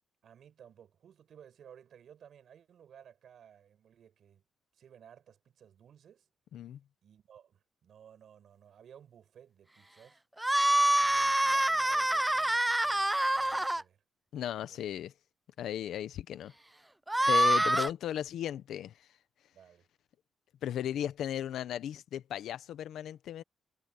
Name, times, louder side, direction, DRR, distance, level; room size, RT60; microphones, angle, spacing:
voice 1, 0.2-4.4 4.7-6.3 7.0-10.2 11.0-14.0 14.4-14.9 19.5-19.9, right 8 dB, 60° right, 6.5 m, -57 dB
sound 1, 10.4-13.8 17.1-17.9, right 1 dB, 10° right, 0.3 m, -26 dB
voice 2, 14.3-15.1 15.6-16.5 17.3-19.1 20.6-23.4, left 11 dB, 85° left, 0.8 m, -36 dB
cardioid pair, 135°, 0 cm